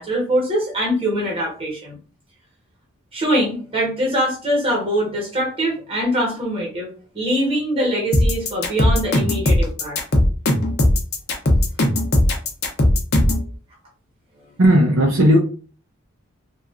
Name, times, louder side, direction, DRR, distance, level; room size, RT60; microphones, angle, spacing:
voice 1, 0.0-2.0 3.1-10.0, equal, 25° right, -2 dB, 1.1 m, -23 dB
sound 1, 8.1-13.5, left 1 dB, 50° left, 0.6 m, -17 dB
voice 2, 14.6-15.4, equal, 65° right, -1 dB, 0.5 m, -14 dB
2.9 x 2.3 x 2.4 m, 0.38 s
head